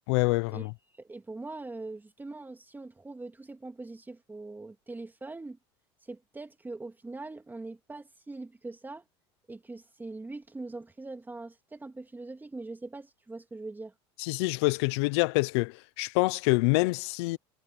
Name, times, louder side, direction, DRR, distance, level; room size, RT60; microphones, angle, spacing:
voice 1, 0.1-0.7 14.2-17.4, left 25 dB, 75° left, 0.9 m, -26 dB
voice 2, 0.9-5.6 6.0-9.0 9.5-13.9, right 3 dB, 15° right, 2.8 m, -42 dB
supercardioid pair, 90°, 14 cm